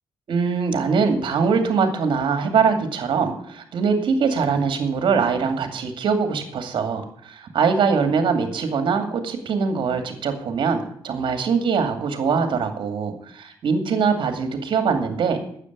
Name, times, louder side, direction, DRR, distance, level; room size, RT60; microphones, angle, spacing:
voice 1, 0.3-15.4, right 5 dB, 65° right, 6 dB, 2.5 m, -22 dB
9.8 x 8.3 x 9.5 m, 0.65 s
supercardioid pair, 55°, 9 cm